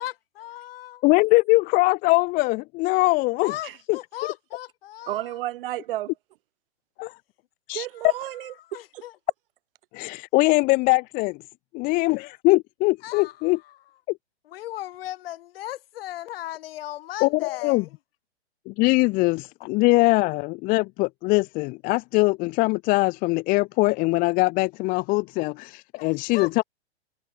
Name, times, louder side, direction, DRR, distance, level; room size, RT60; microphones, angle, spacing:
voice 1, 0.0-1.0 3.4-5.3 8.7-9.2 13.0-13.3 14.5-17.9 26.0-26.6, left 14 dB, 55° left, 5.5 m, -37 dB
voice 2, 1.0-3.5 3.9-4.0 7.0-7.2 7.7-7.9 9.9-11.4 11.7-13.6 14.1-14.2 17.2-17.9 18.7-26.6, left 24 dB, 25° left, 0.7 m, -22 dB
voice 3, 5.1-6.1 7.7-8.5 8.9-9.0, right 15 dB, 50° right, 1.1 m, -32 dB
hypercardioid pair, 135°, 34 cm